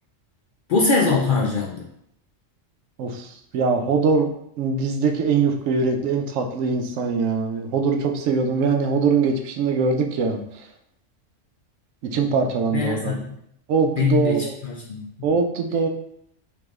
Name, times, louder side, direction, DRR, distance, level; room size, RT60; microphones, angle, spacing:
voice 1, 0.7-1.9 12.7-13.3 14.0-15.1, left 4 dB, 60° left, -1 dB, 0.5 m, -22 dB
voice 2, 3.0-4.3 4.6-10.4 12.0-13.2 13.7-14.5 15.2-15.9, right 5 dB, 85° right, 5 dB, 1.0 m, -22 dB
4.8 x 3.5 x 2.4 m, 0.75 s
omnidirectional pair, 1.3 m